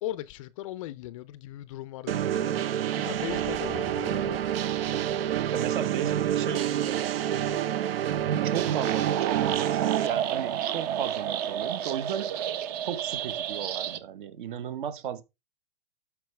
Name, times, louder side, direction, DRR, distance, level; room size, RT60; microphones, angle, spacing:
voice 1, 0.0-2.7 3.0-4.4, left 14 dB, 35° left, 0.4 m, -38 dB
sound 1, 2.1-10.1, right 11 dB, 80° right, 0.6 m, -28 dB
sound 2, 3.0-7.0, right 2 dB, 10° right, 0.7 m, -52 dB
sound 3, 4.3-5.3 8.1-14.0, right 10 dB, 45° right, 0.8 m, -31 dB
voice 2, 5.5-7.3 8.4-12.4 12.9-15.2, right 9 dB, 60° right, 1.1 m, -35 dB
12.0 x 4.8 x 3.2 m
hypercardioid pair, 150°, 29 cm